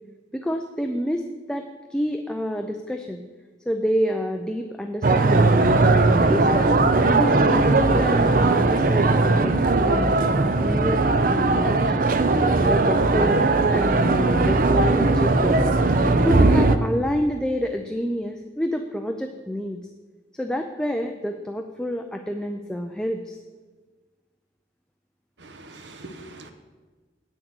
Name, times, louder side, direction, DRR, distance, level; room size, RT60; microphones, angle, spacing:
voice 1, 0.3-3.2 3.7-6.7 7.0-10.2 10.6-11.0 11.2-12.1 12.6-13.4 13.7-15.7 16.1-19.8 20.4-23.4, equal, 5° left, 4 dB, 0.4 m, -28 dB
sound 1, 5.0-16.8, right 3 dB, 50° right, 0.5 m, -19 dB
voice 2, 25.4-26.5, right 2 dB, 80° right, 7 dB, 0.9 m, -42 dB
9.2 x 6.3 x 7.7 m, 1.3 s
head